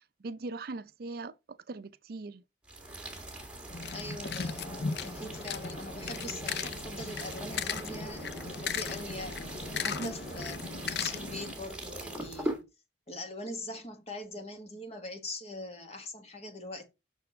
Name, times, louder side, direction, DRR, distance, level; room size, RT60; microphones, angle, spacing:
voice 1, 0.2-2.4 9.8-10.1, right 3 dB, 55° right, 0.5 m, -40 dB
sound 1, 2.6-12.6, right 1 dB, 5° right, 2.0 m, -41 dB
sound 2, 3.7-11.5, left 6 dB, 60° left, 0.5 m, -37 dB
voice 2, 3.9-12.6 13.1-16.9, left 1 dB, 35° left, 1.6 m, -42 dB
6.3 x 4.5 x 5.4 m
head